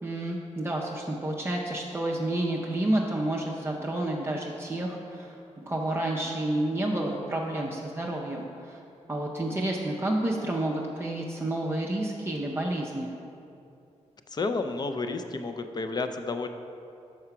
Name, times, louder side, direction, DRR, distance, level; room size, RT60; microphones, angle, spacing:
voice 1, 0.0-8.8 9.1-13.2, right 1 dB, 20° right, -3 dB, 0.5 m, -30 dB
voice 2, 14.3-16.5, left 3 dB, 35° left, 7 dB, 0.4 m, -31 dB
5.5 x 4.8 x 5.8 m, 2.6 s
wide cardioid pair, 130°, 12 cm